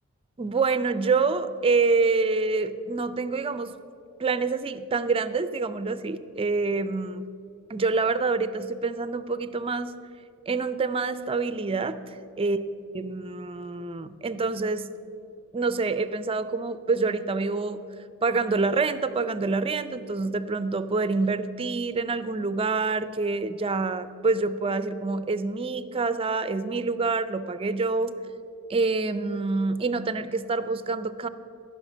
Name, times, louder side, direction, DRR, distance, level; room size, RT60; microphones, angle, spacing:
voice 1, 0.4-3.8 4.2-7.3 7.7-9.9 10.5-12.6 12.9-14.9 15.5-17.8 18.2-28.1 28.7-31.3, right 4 dB, 25° right, 13 dB, 0.4 m, -26 dB
14.5 x 5.7 x 7.3 m, 2.5 s
head